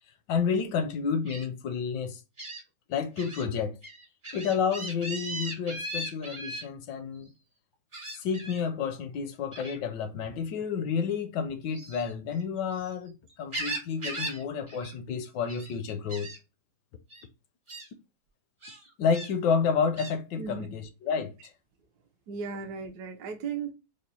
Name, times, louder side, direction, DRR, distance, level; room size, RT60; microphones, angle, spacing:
voice 1, 0.3-2.2 2.9-3.8 4.3-7.3 8.2-16.3 19.0-21.5, left 6 dB, 75° left, 1.1 m, -30 dB
Gull seagull, 1.3-1.4 2.4-2.6 3.2-3.4 3.8-6.6 7.9-8.6 9.5-9.8 11.6-12.9 13.3-14.4 14.7-14.9 15.2-15.7 16.1-16.4 17.1-17.2 17.7-17.9 18.6-19.3 20.0-20.2, right 1 dB, 35° right, 0.4 m, -38 dB
voice 2, 20.4-20.7 22.3-23.7, right 6 dB, 70° right, 1.0 m, -36 dB
4.9 x 2.0 x 2.7 m
omnidirectional pair, 2.1 m